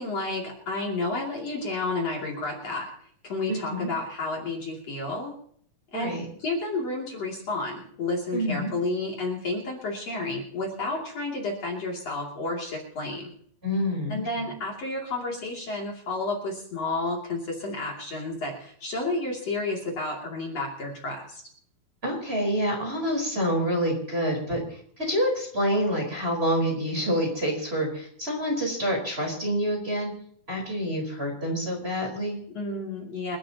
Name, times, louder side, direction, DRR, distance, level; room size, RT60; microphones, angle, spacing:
voice 1, 0.0-2.9 3.2-5.3 5.9-13.3 14.1-21.4 32.6-33.4, left 2 dB, 45° left, -2 dB, 3.6 m, -31 dB
voice 2, 3.5-3.9 5.9-6.2 8.3-8.7 13.6-14.2 22.0-30.1 30.5-32.4, equal, 15° right, -1 dB, 4.4 m, -27 dB
28.0 x 12.5 x 2.9 m, 0.62 s
omnidirectional pair, 4.2 m